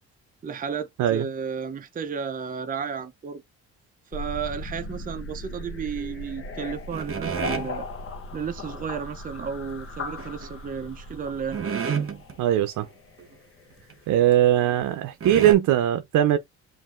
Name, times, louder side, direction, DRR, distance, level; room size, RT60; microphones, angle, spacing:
voice 1, 0.4-3.4 4.1-7.9 8.3-11.6, right 6 dB, 30° right, 0.5 m, -33 dB
sound 1, 4.1-14.1, left 2 dB, 45° left, 0.8 m, -38 dB
sound 2, 6.9-7.7 10.2-10.5 11.1-11.2 11.5-12.3 12.8-12.9 13.2-13.3 13.9-14.0 14.8-14.9 15.2-15.5, right 6 dB, 45° right, 1.1 m, -29 dB
voice 2, 12.4-12.9 14.1-16.4, right 12 dB, 80° right, 0.6 m, -20 dB
7.5 x 2.6 x 2.4 m
cardioid pair, 90°, 30 cm